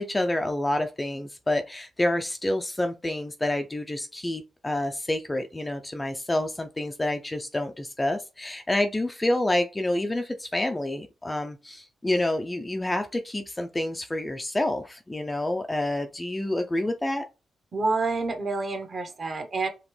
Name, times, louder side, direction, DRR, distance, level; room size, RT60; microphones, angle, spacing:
voice 1, 0.0-17.3, left 1 dB, 15° left, 0.4 m, -28 dB
voice 2, 17.7-19.7, right 3 dB, 40° right, 0.9 m, -28 dB
5.1 x 2.9 x 3.1 m
wide cardioid pair, 140°, 0 cm